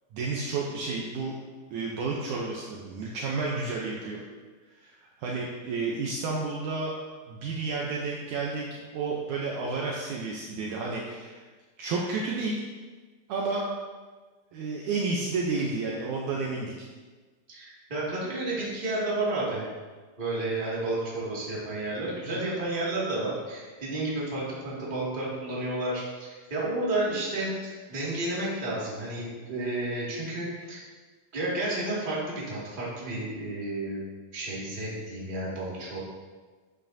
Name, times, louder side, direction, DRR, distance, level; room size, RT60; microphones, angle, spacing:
voice 1, 0.1-1.3 1.7-4.2 4.7-6.9 7.3-11.4 11.8-12.6 13.3-13.7 14.5-16.7 22.3-22.5, right 3 dB, 70° right, -2 dB, 2.0 m, -31 dB
voice 2, 17.5-19.7 20.2-30.8 31.3-34.0 34.3-36.0, right 2 dB, 20° right, -7 dB, 1.7 m, -31 dB
11.0 x 7.3 x 2.7 m, 1.4 s
omnidirectional pair, 4.0 m